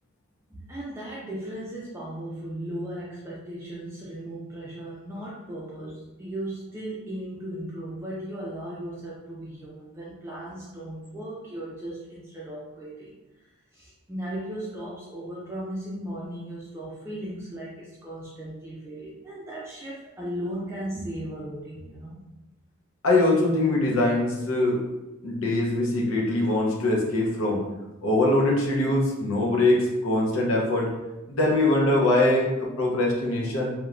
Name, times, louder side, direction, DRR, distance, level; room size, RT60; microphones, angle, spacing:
voice 1, 0.5-13.2 13.7-22.2, right 1 dB, 10° right, -6 dB, 0.3 m, -36 dB
voice 2, 23.0-24.8 25.2-27.6 28.0-30.9 31.3-33.7, left 2 dB, 80° left, -2 dB, 0.6 m, -22 dB
3.0 x 2.1 x 2.4 m, 1.0 s
head